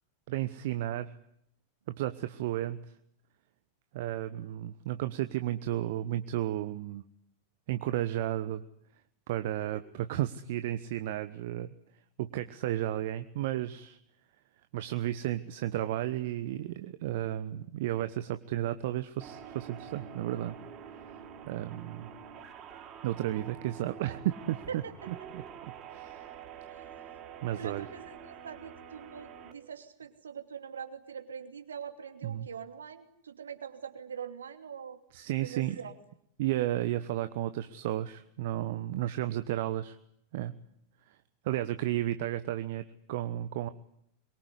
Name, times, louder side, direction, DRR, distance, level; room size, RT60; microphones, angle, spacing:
voice 1, 0.3-1.1 2.0-2.8 3.9-7.0 7.7-8.6 9.3-9.8 10.1-11.7 12.2-14.0 14.7-20.6 21.5-22.1 23.0-24.8 25.1-25.2 25.9-26.3 27.4-27.9 32.2-32.5 35.1-35.8 36.4-40.0 40.3-40.5 41.1-41.2 41.4-43.7, right 13 dB, 50° right, 11 dB, 1.1 m, -33 dB
sound 1, 19.2-29.5, right 8 dB, 30° right, 4.5 m, -47 dB
voice 2, 24.7-25.1 26.7-26.9 27.5-35.0 35.4-36.0, right 7 dB, 70° right, 8 dB, 2.9 m, -43 dB
25.0 x 23.0 x 9.9 m, 0.72 s
figure-of-eight pair, 90°, 0 cm